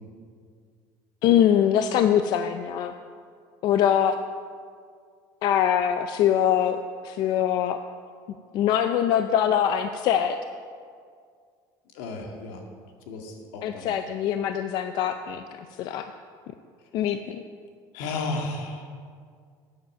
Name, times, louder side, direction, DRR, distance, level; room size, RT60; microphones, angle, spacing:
voice 1, 1.2-2.9 3.6-4.2 5.4-7.8 8.5-10.4 13.6-16.1 16.9-17.4, left 9 dB, 55° left, 8 dB, 0.5 m, -23 dB
voice 2, 12.0-12.6 13.1-14.0 17.9-18.8, left 3 dB, 80° left, 3 dB, 2.0 m, -33 dB
12.0 x 9.6 x 6.6 m, 2.1 s
cardioid pair, 150°, 9 cm